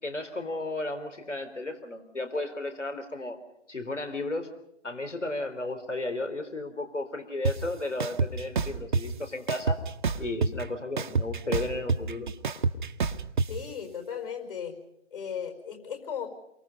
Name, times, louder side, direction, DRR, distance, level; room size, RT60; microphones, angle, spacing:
voice 1, 0.0-3.4 3.7-4.5 4.8-9.8 10.2-12.3, left 2 dB, 85° left, 7 dB, 4.2 m, -34 dB
sound 1, 7.4-7.5 8.0-9.0 9.5-10.6 11.0-13.5, right 4 dB, 45° right, 1.1 m, -26 dB
voice 2, 13.5-14.7 15.1-16.3, left 7 dB, 50° left, 5 dB, 5.1 m, -36 dB
28.0 x 24.0 x 5.3 m, 0.78 s
figure-of-eight pair, 150°, 35 cm